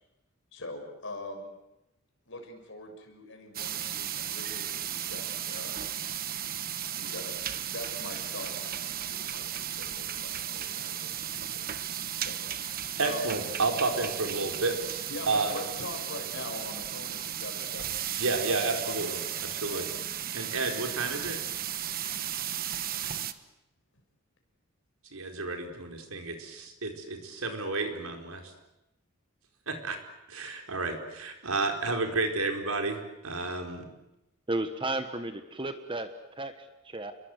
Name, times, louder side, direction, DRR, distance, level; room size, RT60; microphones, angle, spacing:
voice 1, 0.5-1.5 2.3-5.8 7.0-11.6 12.2-13.4 15.1-18.3 18.8-19.2 19.7-19.9, left 2 dB, 60° left, 4 dB, 6.4 m, -43 dB
sound 1, 3.5-23.3, right 10 dB, 45° right, 1.2 m, -35 dB
voice 2, 13.0-15.5 18.2-19.2 19.6-19.8 20.3-21.4 25.1-28.4 29.7-30.0 30.3-33.0 33.2-33.9, right 3 dB, 85° right, 4 dB, 4.6 m, -31 dB
voice 3, 34.5-36.1 36.4-37.1, right 2 dB, 25° right, 9 dB, 1.3 m, -33 dB
29.5 x 22.5 x 8.1 m, 0.92 s
head